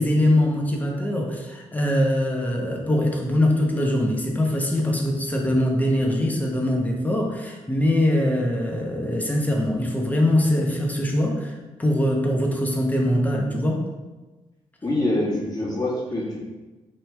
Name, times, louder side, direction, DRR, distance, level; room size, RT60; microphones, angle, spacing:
voice 1, 0.0-13.8, left 1 dB, 10° left, 0 dB, 0.9 m, -22 dB
voice 2, 14.8-16.4, left 1 dB, 30° left, -4 dB, 1.4 m, -25 dB
3.2 x 2.8 x 3.4 m, 1.2 s
hypercardioid pair, 45°, 13 cm